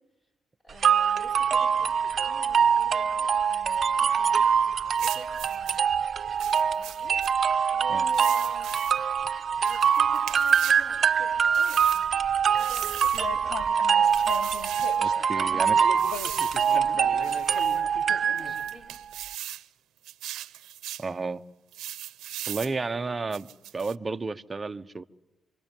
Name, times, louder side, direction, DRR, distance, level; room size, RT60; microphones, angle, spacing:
voice 1, 0.6-6.0 6.3-7.2 7.7-8.8 9.6-13.7 15.4-17.5 17.9-18.9, equal, 25° left, 1 dB, 5.9 m, -49 dB
sound 1, 0.8-18.7, right 7 dB, 50° right, 1.0 m, -24 dB
sound 2, 5.0-5.8 6.4-7.3 8.1-9.0 9.6-10.9 11.5-12.1 12.6-13.3 14.1-15.0 16.0-16.8 17.2-17.8 18.4-19.7 20.0-21.1 21.7-22.8 23.3-24.0, right 13 dB, 85° right, 0.9 m, -39 dB
sound 3, 13.0-18.5, left 5 dB, 70° left, 2.9 m, -39 dB
voice 2, 15.0-15.8 21.0-21.4 22.5-25.0, right 3 dB, 25° right, 7 dB, 1.1 m, -32 dB
27.0 x 25.0 x 7.3 m, 0.97 s
cardioid pair, 90°, 0 cm